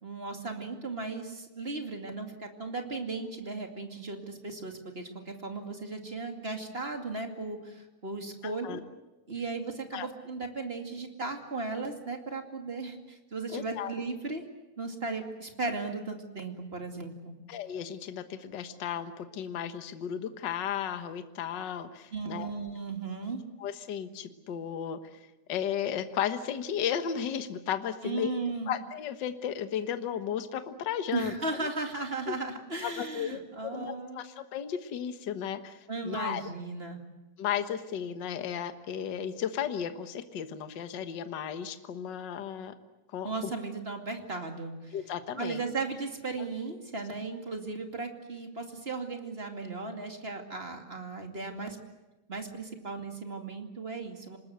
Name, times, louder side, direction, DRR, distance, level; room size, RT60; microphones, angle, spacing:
voice 1, 0.0-8.8 9.3-14.4 14.8-17.4 22.1-23.4 28.0-28.7 31.1-34.2 35.9-37.0 43.2-45.0 45.4-51.8 52.3-54.4, right 3 dB, 20° right, 4 dB, 2.1 m, -36 dB
voice 2, 8.4-8.8 9.9-10.1 13.5-13.9 17.5-22.5 23.6-25.0 25.5-28.3 28.7-31.3 31.6-31.7 32.3-32.4 32.8-36.4 37.4-42.7 43.1-43.5 44.9-45.6 46.4-46.5, left 9 dB, 50° left, 9 dB, 1.5 m, -34 dB
26.0 x 20.5 x 8.1 m, 1.0 s
omnidirectional pair, 3.6 m